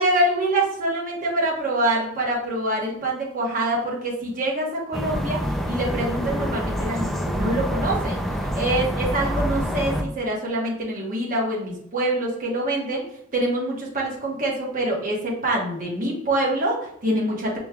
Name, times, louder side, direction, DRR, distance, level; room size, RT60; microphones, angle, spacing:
voice 1, 0.0-5.4 5.7-8.2 8.5-13.0 13.3-17.6, right 1 dB, 40° right, -3 dB, 1.2 m, -25 dB
sound 1, 4.9-10.0, equal, ahead, 0.3 m, -26 dB
5.2 x 3.1 x 2.3 m, 0.69 s
head